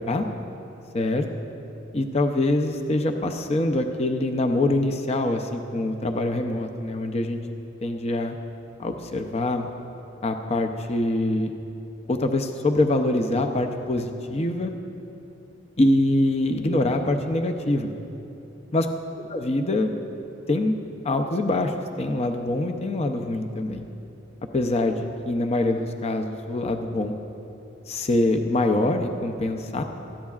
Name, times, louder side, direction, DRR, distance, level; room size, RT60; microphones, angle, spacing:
voice 1, 0.9-1.3 1.9-7.4 7.8-8.4 8.8-9.7 10.2-11.5 12.1-14.7 15.8-17.9 18.7-18.9 19.1-19.9 20.5-20.7 21.0-23.8 24.5-27.1 27.9-29.8, left 2 dB, 35° left, 5 dB, 0.6 m, -24 dB
19.0 x 13.5 x 2.4 m, 2.9 s
head